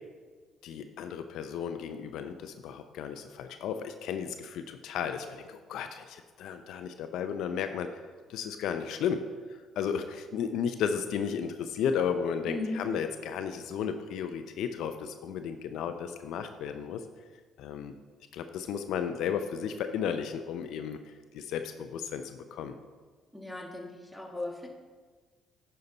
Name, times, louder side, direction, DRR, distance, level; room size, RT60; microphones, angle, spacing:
voice 1, 0.6-8.0 8.3-9.3 9.8-17.0 17.6-17.9 18.3-22.8, left 7 dB, 75° left, 8 dB, 0.5 m, -34 dB
voice 2, 12.5-12.9 23.3-24.7, left 2 dB, ahead, 0 dB, 1.5 m, -37 dB
9.6 x 5.6 x 4.0 m, 1.4 s
supercardioid pair, 80°, 0 cm